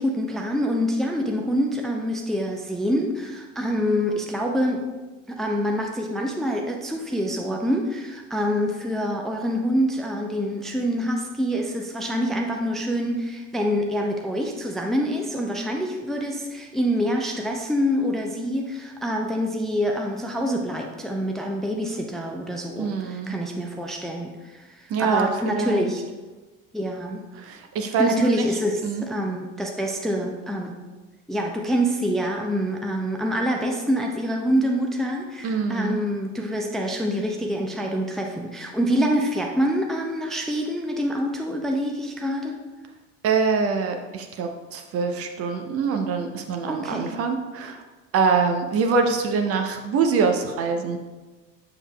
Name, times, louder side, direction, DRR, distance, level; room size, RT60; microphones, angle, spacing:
voice 1, 0.0-4.8 5.3-26.0 26.7-27.2 28.0-30.7 31.3-42.5 46.7-47.2, equal, ahead, 1 dB, 0.5 m, -26 dB
voice 2, 22.8-23.3 24.9-25.9 27.4-28.4 28.8-29.1 35.4-36.1 43.2-47.8 48.1-51.0, right 5 dB, 40° right, 5 dB, 0.7 m, -24 dB
7.1 x 6.7 x 2.3 m, 1.2 s
figure-of-eight pair, 60°, 37 cm